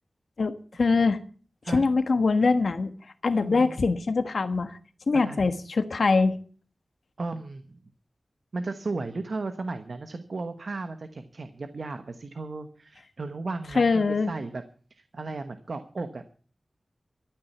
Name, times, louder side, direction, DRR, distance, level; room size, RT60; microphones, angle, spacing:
voice 1, 0.4-1.2 1.7-2.9 3.2-4.8 5.1-6.4 13.7-14.3, left 4 dB, 80° left, 10 dB, 1.4 m, -23 dB
voice 2, 3.4-3.7 5.1-5.5 7.2-7.8 8.5-14.6 14.9-16.3, right 3 dB, 65° right, 9 dB, 1.1 m, -35 dB
13.5 x 9.1 x 7.9 m, 0.43 s
wide cardioid pair, 85°, 0 cm